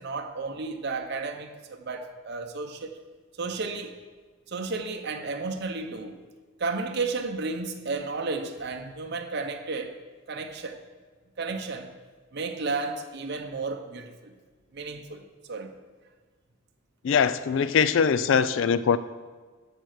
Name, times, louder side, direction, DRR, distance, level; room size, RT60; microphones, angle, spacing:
voice 1, 0.0-3.0 3.4-4.0 4.5-6.2 6.6-10.0 10.3-10.8 11.4-11.9 12.3-14.3 14.7-15.2 15.5-15.7, right 3 dB, 50° right, 0.7 m, -33 dB
voice 2, 17.0-19.0, left 6 dB, 60° left, 0.3 m, -22 dB
13.0 x 4.5 x 6.5 m
head